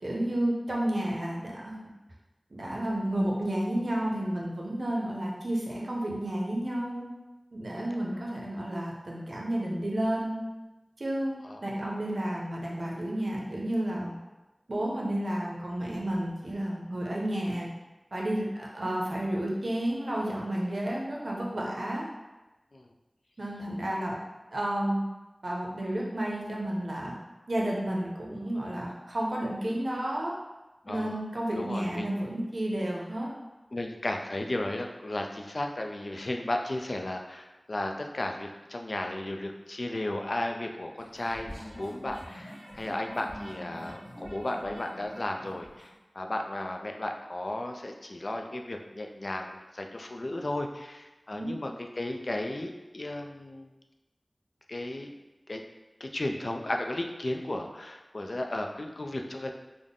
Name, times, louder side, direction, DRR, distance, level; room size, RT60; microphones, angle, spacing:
voice 1, 0.0-1.8 2.5-7.1 7.5-10.4 11.0-14.2 14.7-17.7 18.1-22.1 23.4-24.2 24.5-25.0 25.4-27.1 27.5-30.3 30.9-33.3 51.3-51.5, right 1 dB, 80° right, -3 dB, 0.6 m, -31 dB
voice 2, 30.8-31.2 31.5-32.2 33.7-53.7 54.7-55.1 55.5-55.6 56.0-59.5, left 1 dB, 65° left, 3 dB, 0.3 m, -34 dB
sound 1, 41.0-45.9, equal, 45° right, 1.5 m, -45 dB
3.6 x 2.0 x 3.6 m, 1.1 s
wide cardioid pair, 45°, 0 cm